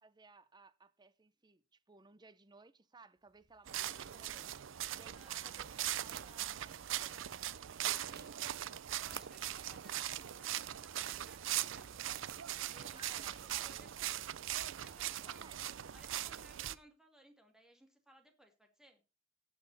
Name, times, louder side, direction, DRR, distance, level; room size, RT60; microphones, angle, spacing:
voice 1, 0.0-7.4 7.7-8.0 8.4-8.6 12.9-13.9 15.2-15.8, right 3 dB, 20° right, 0.6 m, -60 dB
sound 1, 3.3-14.3, right 8 dB, 50° right, 0.8 m, -58 dB
sound 2, 3.7-16.7, right 12 dB, 75° right, 0.5 m, -40 dB
voice 2, 5.0-5.4 7.9-8.2 8.9-12.1 12.6-14.3 14.8-15.4 15.9-19.0, right 1 dB, 5° right, 2.2 m, -62 dB
18.0 x 6.0 x 4.0 m
head